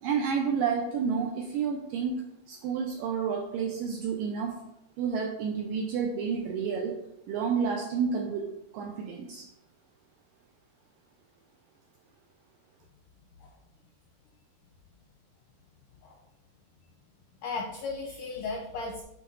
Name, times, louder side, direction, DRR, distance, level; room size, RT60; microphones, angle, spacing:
voice 1, 0.0-2.2 2.5-4.6 5.0-7.0 7.3-9.5, right 6 dB, 80° right, 2 dB, 2.0 m, -30 dB
voice 2, 17.4-19.0, left 4 dB, 75° left, -1 dB, 1.9 m, -35 dB
7.8 x 5.3 x 3.8 m, 0.82 s
omnidirectional pair, 4.6 m